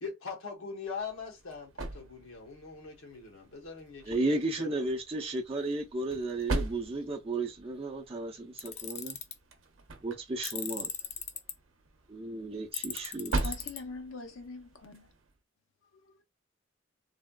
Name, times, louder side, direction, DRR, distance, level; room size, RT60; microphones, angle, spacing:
voice 1, 0.0-4.8, left 5 dB, 90° left, 1.1 m, -42 dB
sound 1, 0.9-15.4, right 2 dB, 70° right, 0.6 m, -41 dB
voice 2, 4.0-9.2 10.0-10.9 12.1-13.4, right 2 dB, 30° right, 0.5 m, -34 dB
Tools, 8.6-9.3 10.4-11.5 12.7-13.8, left 8 dB, 35° left, 0.3 m, -38 dB
voice 3, 13.4-15.1 16.0-16.2, left 3 dB, 75° left, 0.6 m, -43 dB
3.3 x 2.3 x 2.2 m
head